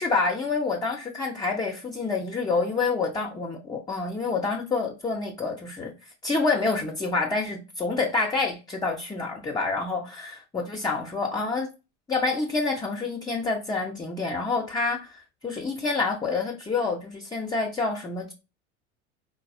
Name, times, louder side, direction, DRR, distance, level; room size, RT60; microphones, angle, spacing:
voice 1, 0.0-11.7 12.1-18.3, left 3 dB, 10° left, 0.5 m, -28 dB
3.9 x 2.0 x 2.6 m
hypercardioid pair, 80°, 37 cm